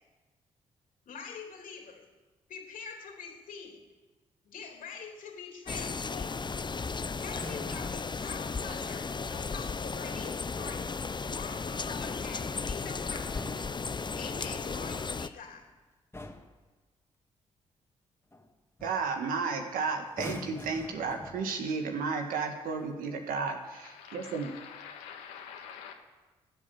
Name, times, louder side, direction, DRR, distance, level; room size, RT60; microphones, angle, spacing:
voice 1, 1.0-2.0 2.5-3.8 4.4-6.5 7.2-11.0 11.3-13.7 14.2-15.7, left 6 dB, 70° left, 3.3 m, -45 dB
sound 1, 5.7-15.3, left 4 dB, 30° left, 0.8 m, -35 dB
sound 2, 7.2-8.2 10.3-10.9 13.1-14.5 15.5-15.7 16.1-16.6 18.3-18.5 18.8-19.1 20.0-21.7 22.6-22.9, left 2 dB, 15° left, 2.1 m, -45 dB
voice 2, 18.8-24.5, right 4 dB, 75° right, 1.9 m, -33 dB
voice 3, 23.8-25.9, left 7 dB, 90° left, 1.9 m, -46 dB
15.0 x 8.2 x 7.3 m
hypercardioid pair, 45°, 14 cm